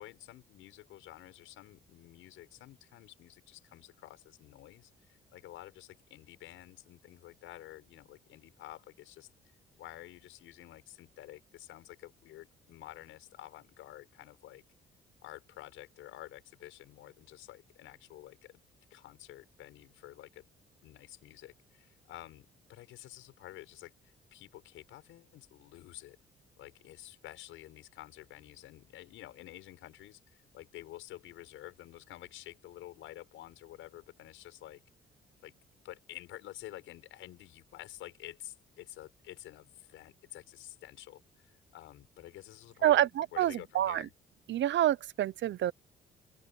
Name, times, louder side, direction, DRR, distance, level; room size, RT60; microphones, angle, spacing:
voice 1, 0.0-9.3 9.8-14.6 15.2-18.6 18.9-20.5 20.8-23.9 24.3-26.2 26.6-34.8 35.4-35.5 35.8-44.1, left 14 dB, 90° left, 6.8 m, -50 dB
voice 2, 42.8-44.1 44.5-45.7, right 12 dB, 65° right, 0.8 m, -27 dB
open air
cardioid pair, 90°, 20 cm